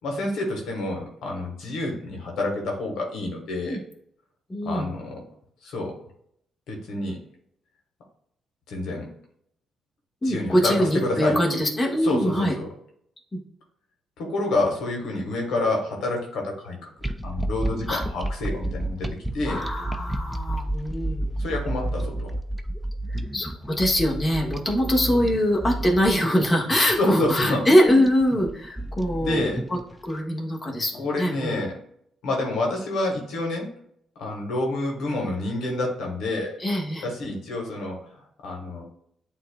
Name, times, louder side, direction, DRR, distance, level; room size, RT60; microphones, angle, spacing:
voice 1, 0.0-3.8 4.6-5.2 5.6-5.9 6.7-7.2 8.7-9.1 10.2-11.4 12.0-12.7 14.2-16.9 17.2-19.1 19.3-19.6 21.4-22.3 27.0-27.6 29.2-29.6 31.0-31.7 32.2-33.7 34.2-36.5 37.0-38.0 38.4-38.8, left 2 dB, 80° left, 0 dB, 1.3 m, -28 dB
voice 2, 4.5-4.9 10.2-12.5 13.3-13.4 17.9-18.0 19.4-21.3 23.3-31.6 36.6-37.1, equal, 25° left, -1 dB, 1.5 m, -23 dB
sound 1, 17.0-30.1, right 1 dB, 5° right, 0.5 m, -31 dB
8.3 x 2.8 x 2.2 m, 0.71 s
cardioid pair, 75°, 0 cm